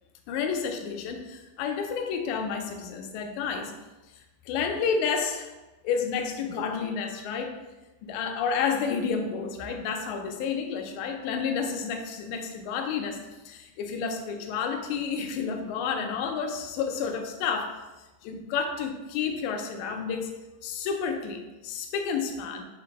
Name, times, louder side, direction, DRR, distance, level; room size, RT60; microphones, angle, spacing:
voice 1, 0.3-3.7 4.5-5.5 5.8-7.5 8.0-13.2 13.5-17.8 18.2-20.3 20.6-22.6, left 6 dB, 80° left, 4 dB, 1.8 m, -30 dB
5.0 x 2.5 x 4.0 m, 1.1 s
omnidirectional pair, 3.7 m